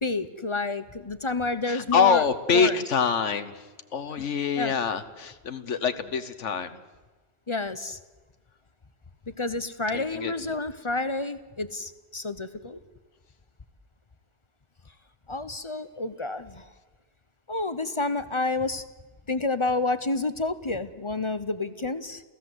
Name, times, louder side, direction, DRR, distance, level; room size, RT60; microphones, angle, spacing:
voice 1, 0.0-2.2 2.5-2.8 4.2-4.3 4.6-4.7 7.5-8.0 9.4-12.8 15.3-16.6 17.5-18.8 19.3-22.2, left 3 dB, 30° left, 13 dB, 0.8 m, -29 dB
voice 2, 1.7-3.6 3.9-6.8 9.9-10.3, left 6 dB, 75° left, 10 dB, 1.3 m, -25 dB
28.5 x 16.0 x 8.0 m, 1.3 s
omnidirectional pair, 1.2 m